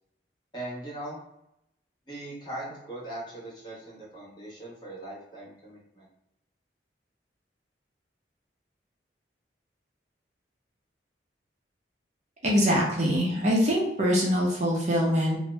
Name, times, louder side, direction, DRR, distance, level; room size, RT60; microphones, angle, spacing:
voice 1, 0.5-1.2 2.1-6.1, right 1 dB, 25° left, -6 dB, 1.0 m, -40 dB
voice 2, 12.4-15.4, equal, 40° right, -3 dB, 0.6 m, -24 dB
2.7 x 2.0 x 3.2 m, 0.80 s
head